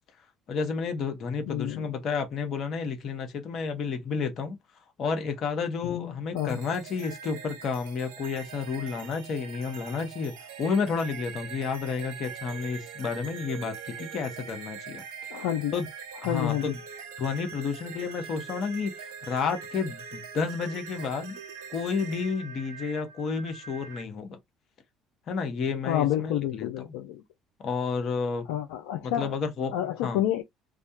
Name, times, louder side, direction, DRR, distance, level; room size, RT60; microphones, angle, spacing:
voice 1, 0.5-4.6 5.0-10.3 10.6-15.0 15.7-15.9 16.2-16.8 17.2-21.4 21.7-24.4 25.3-27.0 27.6-28.5 29.0-30.2, left 5 dB, 55° left, 0.8 m, -31 dB
voice 2, 1.5-1.9 5.8-6.1 6.3-6.6 15.3-15.7 16.3-16.7 25.8-27.2 28.5-29.3 29.7-30.4, left 12 dB, 80° left, 0.3 m, -29 dB
sound 1, 6.4-24.0, right 6 dB, 80° right, 0.5 m, -43 dB
2.3 x 2.2 x 2.8 m
hypercardioid pair, 60°, 0 cm